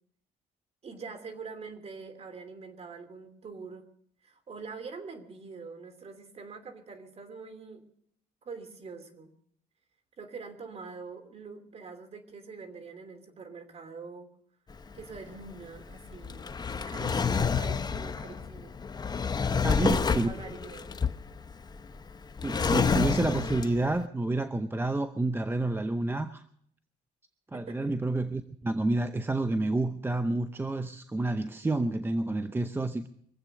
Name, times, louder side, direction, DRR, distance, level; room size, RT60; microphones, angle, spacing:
voice 1, 0.8-3.9 4.2-7.8 8.4-9.3 10.2-14.3 14.9-16.5 16.9-18.8 19.5-21.0 27.5-27.9, right 4 dB, 40° right, 8 dB, 2.9 m, -44 dB
Drawer open or close, 14.7-24.0, left 5 dB, 25° left, 0.8 m, -29 dB
voice 2, 19.6-20.3 22.4-26.4 27.5-33.1, right 2 dB, 15° right, 10 dB, 0.7 m, -29 dB
24.0 x 8.1 x 6.5 m, 0.67 s
cardioid pair, 110°, 17 cm